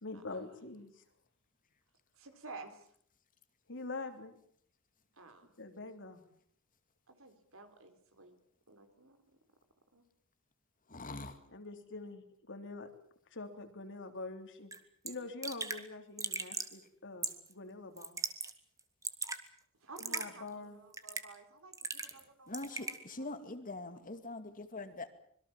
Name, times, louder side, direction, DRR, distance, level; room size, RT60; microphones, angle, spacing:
voice 1, 0.0-1.0 3.7-4.4 5.6-6.2 11.5-12.9 13.3-14.7 15.0-18.2 20.0-20.8, left 3 dB, 60° left, 6 dB, 3.4 m, -45 dB
voice 2, 2.2-2.9 5.1-5.5 7.1-8.4 8.7-9.2 9.9-10.0 19.8-23.3 23.7-24.0, right 3 dB, 65° right, 7 dB, 4.0 m, -53 dB
voice 3, 10.9-11.4 22.5-25.1, left 2 dB, 40° left, 9 dB, 2.4 m, -43 dB
Raindrop / Drip, 14.7-14.8 15.1-15.2 15.4-15.8 16.2-16.7 17.2-17.5 18.0-18.5 18.8-19.4 20.0-20.3 20.9-21.4 21.7-22.2 22.5-23.0, right 4 dB, 15° right, 2.0 m, -38 dB
26.0 x 22.5 x 7.3 m, 0.62 s
head